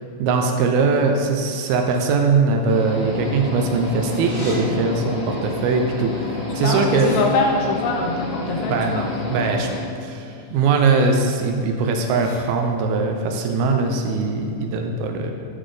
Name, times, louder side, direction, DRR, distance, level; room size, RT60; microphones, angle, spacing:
voice 1, 0.2-7.1 8.7-9.7 10.0-15.3, right 4 dB, 80° right, 3 dB, 2.3 m, -21 dB
sound 1, 2.7-9.8, left 3 dB, 60° left, 2.4 m, -30 dB
sound 2, 4.1-4.6 5.7-5.8 6.1-7.2 10.4-10.7 11.1-11.4 11.8-12.4, equal, 35° left, 1.1 m, -37 dB
voice 2, 6.6-9.1, left 3 dB, 80° left, 1 dB, 2.3 m, -23 dB
11.5 x 4.0 x 4.8 m, 2.6 s
omnidirectional pair, 4.8 m